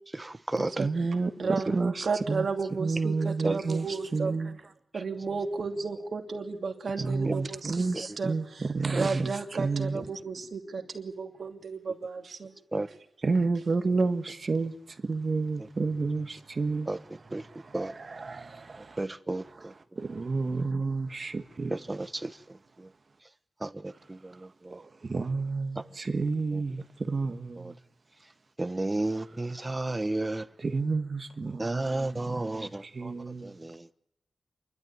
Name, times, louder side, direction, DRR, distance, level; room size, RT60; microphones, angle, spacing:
voice 1, 0.1-0.9 3.4-3.6 7.2-7.4 9.0-9.1 12.7-12.9 16.9-17.0 17.3-17.4 17.7-18.0 19.0-19.7 21.7-22.4 22.8-22.9 23.6-24.8 27.6-27.7 28.6-30.5 31.6-33.1 33.4-33.9, right 2 dB, 25° right, 1.0 m, -32 dB
voice 2, 0.8-4.6 7.0-10.0 13.2-16.9 17.2-19.0 19.6-19.7 19.9-21.8 24.3-24.4 24.7-27.8 30.6-33.5, right 3 dB, 50° right, 1.5 m, -31 dB
voice 3, 1.4-4.3 4.9-7.7 8.2-8.3 8.9-12.5, right 4 dB, 70° right, 2.8 m, -33 dB
28.0 x 12.5 x 9.6 m
wide cardioid pair, 80°, 0 cm